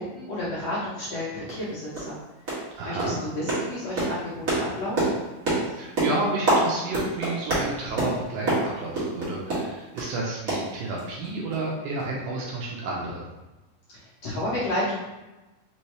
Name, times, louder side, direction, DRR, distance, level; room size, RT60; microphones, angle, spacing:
voice 1, 0.1-2.2 2.4-2.6 2.8-5.2 13.9-15.0, left 1 dB, 65° left, -9 dB, 1.8 m, -31 dB
sound 1, 1.0-1.1 1.5-1.6 1.9-2.2 2.5-2.7 3.0-10.1 10.5-11.3 11.5-11.6 12.0-12.1, right 2 dB, 45° right, 1.1 m, -27 dB
voice 2, 2.7-3.2 5.5-13.3, right 2 dB, 80° right, -3 dB, 1.9 m, -31 dB
5.3 x 2.8 x 3.2 m, 1.1 s
omnidirectional pair, 4.0 m